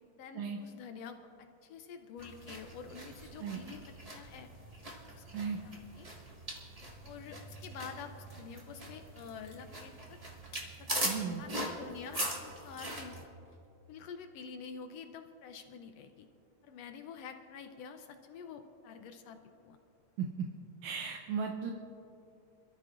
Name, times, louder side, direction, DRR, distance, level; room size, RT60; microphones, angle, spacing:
voice 1, 0.1-3.8 4.1-4.5 5.1-6.1 7.0-10.2 10.7-11.1 11.4-13.2 13.9-16.3 16.6-19.8, left 6 dB, 75° left, 7 dB, 1.6 m, -48 dB
sound 1, 2.2-13.2, right 1 dB, 25° right, 0.8 m, -41 dB
sound 2, 7.5-8.4 8.7-11.7 12.2-12.3 12.8-13.7, left 3 dB, 35° left, 1.0 m, -60 dB
voice 2, 11.0-11.4 20.2-20.5 20.8-21.7, right 6 dB, 80° right, 1 dB, 2.0 m, -36 dB
26.5 x 13.5 x 2.5 m, 2.7 s
omnidirectional pair, 3.4 m